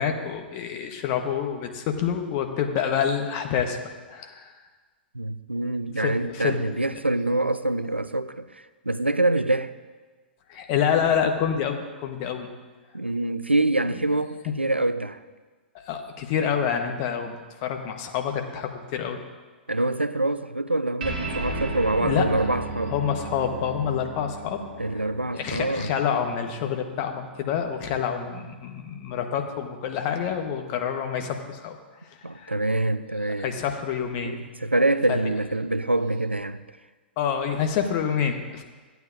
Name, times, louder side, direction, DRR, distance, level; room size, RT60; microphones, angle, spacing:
voice 1, 0.0-3.8 4.1-4.5 6.0-6.6 10.5-12.5 15.7-19.2 22.0-22.3 22.9-24.6 24.9-25.0 25.3-31.8 32.0-32.5 33.4-34.4 35.1-35.3 37.2-38.6, left 8 dB, 40° left, 1.1 m, -27 dB
voice 2, 5.1-9.7 12.9-15.2 19.7-22.9 24.8-25.9 32.2-33.6 34.2-36.6, right 2 dB, 90° right, 0.4 m, -25 dB
sound 1, 21.0-27.8, right 2 dB, 50° right, 1.5 m, -35 dB
14.0 x 9.2 x 2.5 m
figure-of-eight pair, 105°, 6 cm